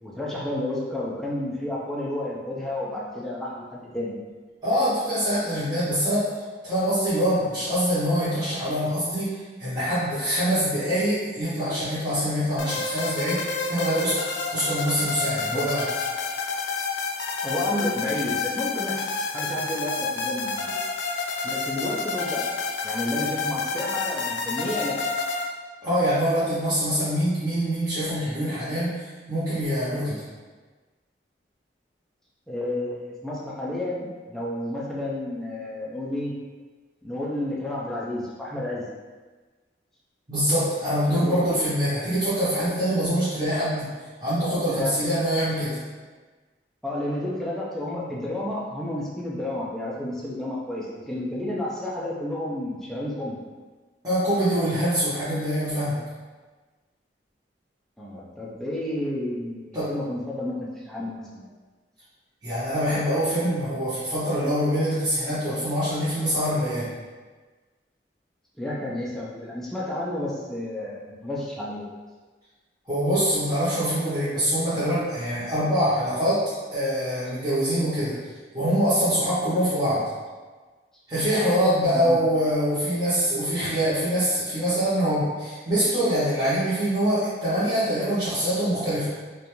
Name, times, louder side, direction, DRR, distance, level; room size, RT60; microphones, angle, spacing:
voice 1, 0.0-4.2 15.5-15.7 16.9-17.0 17.4-19.1 19.3-20.8 21.4-22.4 22.8-25.0 32.5-36.3 37.0-38.8 41.1-41.5 44.6-45.0 46.8-53.4 58.0-61.5 68.6-71.8 81.9-82.2, left 1 dB, ahead, -5 dB, 0.4 m, -31 dB
voice 2, 4.6-6.3 6.6-13.4 13.7-14.2 14.5-15.9 25.8-28.9 29.3-30.2 40.3-43.9 44.2-45.8 54.0-56.0 59.7-60.0 62.4-66.9 72.9-76.4 76.7-78.1 78.5-80.0 81.1-89.1, equal, 20° right, -14 dB, 0.7 m, -24 dB
sound 1, 12.6-25.5, left 4 dB, 85° left, 0.3 m, -29 dB
2.4 x 2.2 x 2.9 m, 1.4 s
head